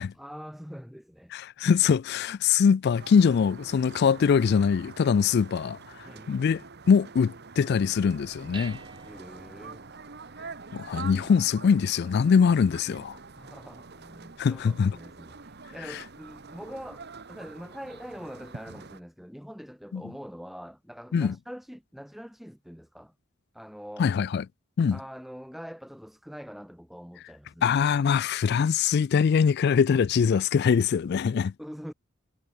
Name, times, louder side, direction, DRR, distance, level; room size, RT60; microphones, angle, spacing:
voice 1, 0.1-1.3 6.0-6.4 9.0-9.8 13.4-23.1 23.5-24.1 24.9-27.8 31.6-31.9, equal, ahead, 2.0 m, -44 dB
voice 2, 1.3-5.8 6.3-6.6 6.9-8.8 10.7-13.2 14.4-14.9 19.9-20.0 21.1-21.3 24.0-24.4 24.8-25.0 27.6-31.5, left 6 dB, 50° left, 0.3 m, -23 dB
sound 1, 2.9-19.0, right 4 dB, 50° right, 1.2 m, -45 dB
Dishes pots and pans, 7.8-17.1, right 4 dB, 20° right, 6.3 m, -53 dB
head